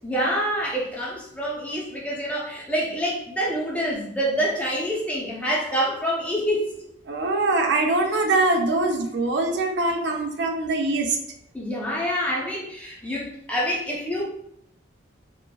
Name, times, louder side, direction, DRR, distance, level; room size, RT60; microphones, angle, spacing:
voice 1, 0.0-6.7 11.5-14.2, equal, 10° left, -4 dB, 0.5 m, -26 dB
voice 2, 7.1-11.2, right 2 dB, 70° right, 3 dB, 0.4 m, -23 dB
2.8 x 2.4 x 2.2 m, 0.74 s
head